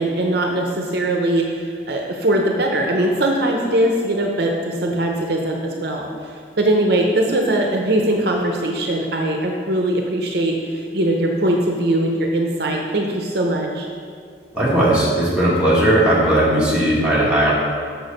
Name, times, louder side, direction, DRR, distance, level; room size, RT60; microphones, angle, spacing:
voice 1, 0.0-6.3 6.6-13.9, right 1 dB, 55° right, 1 dB, 0.7 m, -21 dB
voice 2, 14.5-17.5, right 1 dB, 5° right, -7 dB, 1.7 m, -17 dB
6.8 x 6.1 x 5.3 m, 2.2 s
head